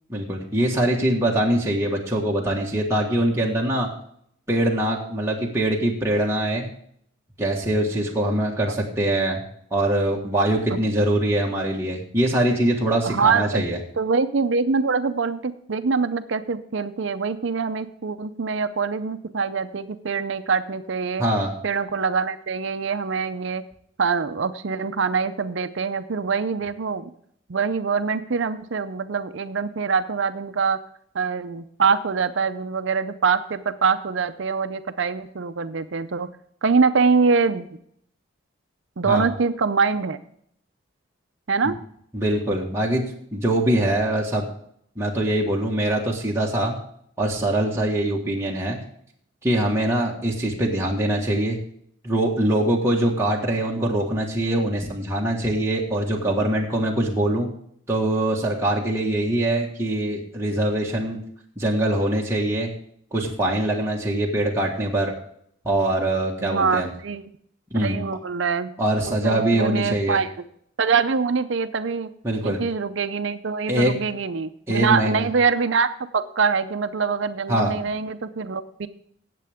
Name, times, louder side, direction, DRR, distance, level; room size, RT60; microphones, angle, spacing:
voice 1, 0.1-3.9 4.5-6.7 7.4-9.4 9.7-13.8 21.2-21.5 39.0-39.3 42.1-43.0 43.3-44.5 45.0-46.8 47.2-48.8 49.4-51.6 52.0-57.5 57.9-61.2 61.6-62.7 63.1-65.1 65.6-66.9 67.7-68.1 68.8-70.2 72.2-72.6 73.7-73.9 74.7-75.2 77.5-77.7, right 1 dB, 15° right, -3 dB, 1.6 m, -23 dB
voice 2, 13.0-13.6 14.0-21.2 21.6-23.6 24.0-27.1 27.5-30.8 31.1-36.3 36.6-37.8 39.0-40.2 41.5-41.8 66.4-67.2 67.8-68.7 69.2-70.3 70.8-72.1 72.4-78.9, right 5 dB, 65° right, 11 dB, 0.6 m, -24 dB
17.5 x 7.6 x 3.6 m, 0.67 s
head